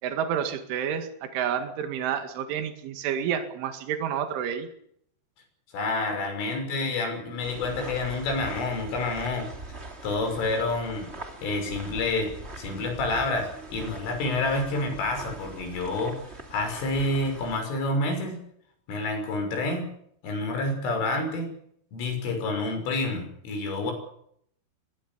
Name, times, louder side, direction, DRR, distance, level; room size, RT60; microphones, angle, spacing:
voice 1, 0.0-4.7, right 8 dB, 75° right, 6 dB, 4.5 m, -29 dB
voice 2, 5.7-9.5 10.0-11.1 11.4-18.4 18.9-19.9 20.2-21.5 21.9-23.9, left 2 dB, 80° left, 5 dB, 8.6 m, -28 dB
sound 1, 7.4-17.6, right 2 dB, 20° right, 2.0 m, -42 dB
24.0 x 22.0 x 7.0 m, 0.69 s
omnidirectional pair, 5.6 m